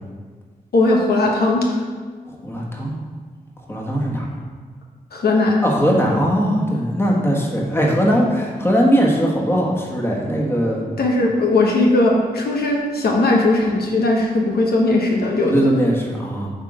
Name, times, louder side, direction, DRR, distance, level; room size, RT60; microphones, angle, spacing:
voice 1, 0.7-1.8 5.1-5.6 11.0-15.5, left 2 dB, 75° left, -1 dB, 1.1 m, -18 dB
voice 2, 2.3-2.9 3.7-4.4 5.6-10.8 15.4-16.5, equal, 15° left, -2 dB, 1.5 m, -19 dB
8.0 x 3.8 x 5.0 m, 1.5 s
cardioid pair, 75°, 16 cm